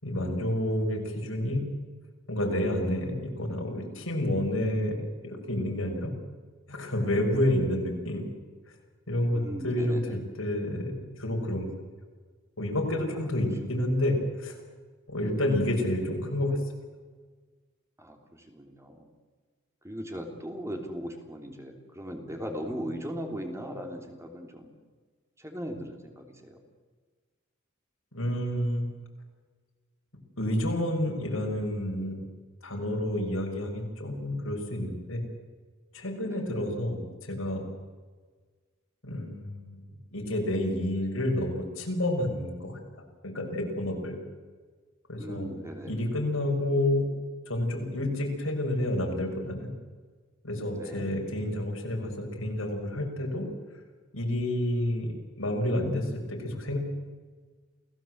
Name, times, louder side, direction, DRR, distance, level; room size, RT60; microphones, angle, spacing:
voice 1, 0.0-1.7 2.3-6.1 6.7-8.3 9.1-11.7 12.6-14.6 15.1-16.6 28.1-28.9 30.4-32.2 32.6-35.2 35.9-37.7 39.0-39.8 40.1-42.8 43.2-44.2 45.1-45.5 45.8-47.1 47.5-49.7 50.4-53.5 54.1-56.8, left 1 dB, 85° left, 1 dB, 6.3 m, -29 dB
voice 2, 9.3-10.2 13.7-13.8 15.2-15.3 18.0-19.1 19.8-24.8 25.4-26.6 36.2-36.6 45.2-45.9 50.7-51.1, equal, 15° right, 3 dB, 3.2 m, -38 dB
29.0 x 17.5 x 7.9 m, 1.5 s
head